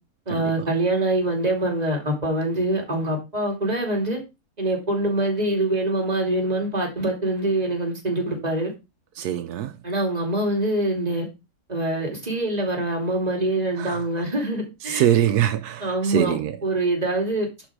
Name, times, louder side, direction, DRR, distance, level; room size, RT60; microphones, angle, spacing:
voice 1, 0.3-4.2 4.6-8.7 9.8-11.3 11.7-15.0 15.8-16.4 16.6-17.5, right 1 dB, 25° right, 2.8 m, -24 dB
voice 2, 9.2-9.7 13.8-14.0 14.9-16.6, right 11 dB, 80° right, 1.2 m, -23 dB
11.0 x 4.1 x 4.7 m
omnidirectional pair, 1.6 m